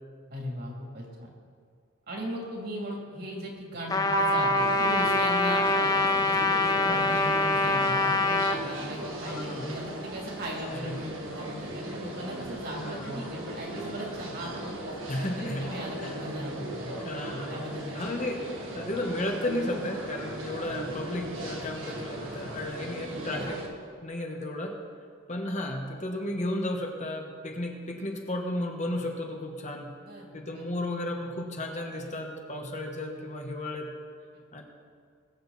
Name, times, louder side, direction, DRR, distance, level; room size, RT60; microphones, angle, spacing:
voice 1, 0.3-1.3 2.1-16.9 17.5-18.0 30.0-30.6 34.3-34.4, equal, 50° right, -2 dB, 2.9 m, -38 dB
Trumpet, 3.9-8.6, left 2 dB, 20° left, 0.5 m, -25 dB
Keyboard (musical), 4.1-6.7, right 4 dB, 30° right, 0.3 m, -33 dB
sound 1, 4.6-23.7, right 1 dB, 90° right, 1.9 m, -38 dB
voice 2, 6.8-7.1 9.2-9.8 10.7-11.0 12.7-13.2 15.1-15.7 16.0-16.2 17.0-17.6 17.9-18.4 18.7-23.6 24.0-24.8 25.3-29.9 30.3-33.9 34.5-34.6, left 1 dB, 35° left, 2 dB, 1.3 m, -34 dB
20.0 x 8.0 x 4.2 m, 2.1 s
head